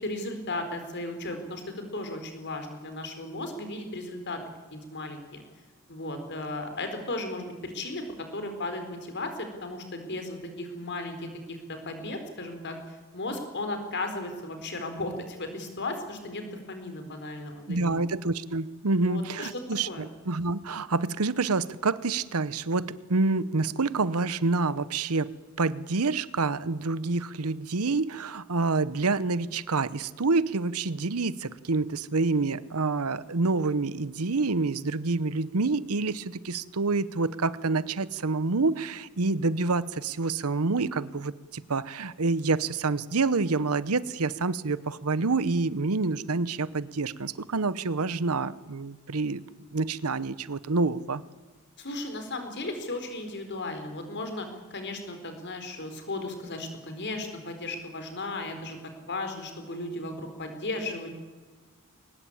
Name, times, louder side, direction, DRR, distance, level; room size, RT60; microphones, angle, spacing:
voice 1, 0.0-4.4 4.7-5.4 5.9-8.1 8.3-18.1 19.0-19.5 19.9-20.1 51.8-61.1, left 2 dB, 55° left, 7 dB, 4.3 m, -35 dB
voice 2, 17.7-25.3 25.6-49.4 49.7-51.2, right 3 dB, 90° right, 17 dB, 0.9 m, -27 dB
22.5 x 20.0 x 8.8 m, 1.3 s
head